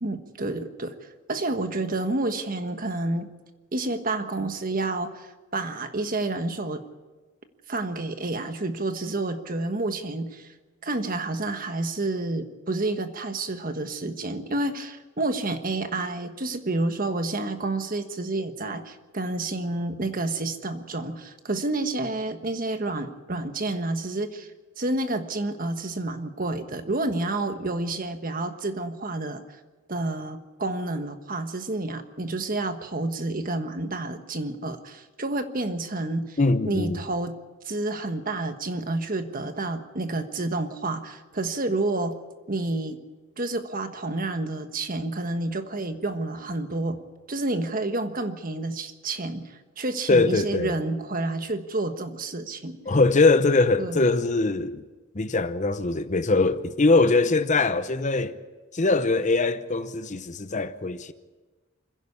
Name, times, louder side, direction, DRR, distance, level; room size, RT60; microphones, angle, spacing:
voice 1, 0.0-3.3 3.7-6.8 7.7-10.5 10.8-24.5 24.8-29.4 29.9-36.4 36.6-37.4 37.6-42.2 42.5-43.0 43.4-47.0 47.3-52.8 53.8-54.0, right 2 dB, 40° right, 1.4 m, -29 dB
voice 2, 36.4-37.0 50.1-50.7 52.9-54.8 55.1-58.4 58.7-61.1, left 3 dB, 35° left, 0.8 m, -22 dB
29.0 x 10.5 x 8.4 m
head